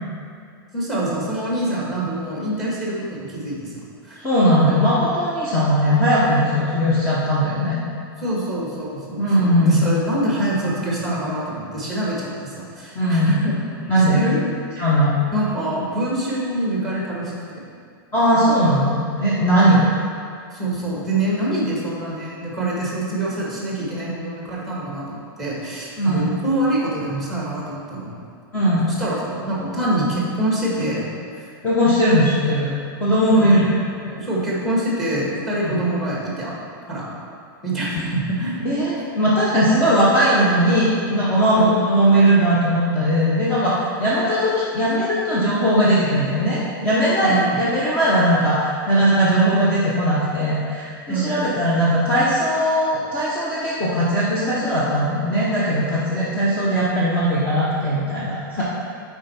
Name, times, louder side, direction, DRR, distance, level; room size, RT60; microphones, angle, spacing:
voice 1, 0.7-3.7 4.0-4.2 8.2-13.5 14.1-14.4 15.3-17.6 19.6-19.8 20.5-28.1 28.9-31.1 31.4-31.5 33.3-33.6 34.2-36.5 36.9-37.1 37.6-38.6 41.3-41.7 47.2-47.5 51.1-51.3 58.6-58.7, right 1 dB, ahead, -5 dB, 1.5 m, -25 dB
voice 2, 4.2-7.8 9.2-9.8 12.9-13.4 13.9-14.2 14.8-15.1 18.1-19.9 26.0-26.3 28.5-28.9 31.6-32.7 33.0-33.7 34.0-34.1 35.6-35.8 37.9-38.1 38.6-58.6, equal, 20° left, -9 dB, 1.0 m, -19 dB
7.4 x 4.6 x 4.4 m, 2.3 s
supercardioid pair, 165°, 12 cm